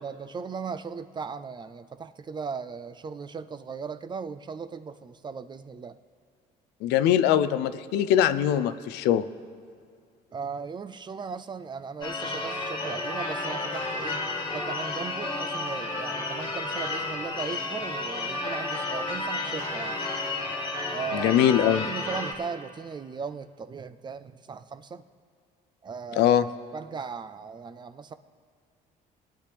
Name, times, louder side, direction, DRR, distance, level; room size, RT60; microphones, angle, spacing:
voice 1, 0.0-6.0 10.3-14.2 14.5-20.1 20.9-21.4 21.7-25.1 25.8-26.3 26.7-28.1, right 5 dB, 25° right, 12 dB, 0.4 m, -37 dB
voice 2, 6.8-9.3 21.1-21.9 26.2-26.5, left 10 dB, 85° left, 13 dB, 0.5 m, -22 dB
Church bell / Car / Alarm, 12.0-22.3, left 2 dB, 25° left, 1.6 m, -32 dB
19.0 x 10.0 x 3.4 m, 2.2 s
cardioid pair, 110°, 17 cm